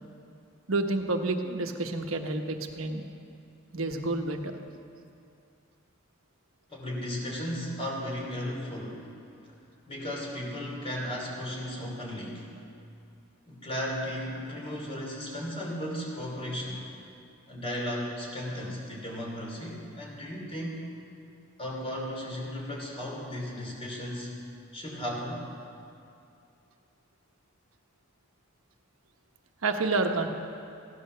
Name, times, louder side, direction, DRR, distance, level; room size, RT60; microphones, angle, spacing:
voice 1, 0.7-3.0 3.7-4.6 29.6-30.3, right 2 dB, 90° right, 5 dB, 1.1 m, -29 dB
voice 2, 6.7-9.1 9.9-12.5 13.5-16.8 17.5-20.8 21.6-24.3 24.7-25.5, equal, 30° left, -2 dB, 3.1 m, -35 dB
15.5 x 10.5 x 6.7 m, 2.5 s
head